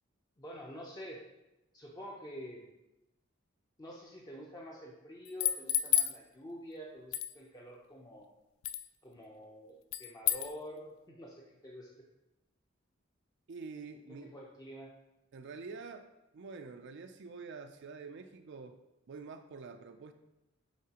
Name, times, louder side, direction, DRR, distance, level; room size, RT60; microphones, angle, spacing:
voice 1, 0.4-1.2 1.7-2.7 3.8-8.3 9.0-11.9 14.1-14.9, equal, 20° left, -3 dB, 0.6 m, -47 dB
sound 1, 5.3-6.2 7.1-7.3 8.6-8.9 9.9-10.5, left 12 dB, 85° left, 0.3 m, -30 dB
voice 2, 13.5-14.3 15.3-18.8 19.1-20.1, right 4 dB, 60° right, 7 dB, 0.4 m, -47 dB
8.3 x 4.0 x 2.9 m, 0.94 s
head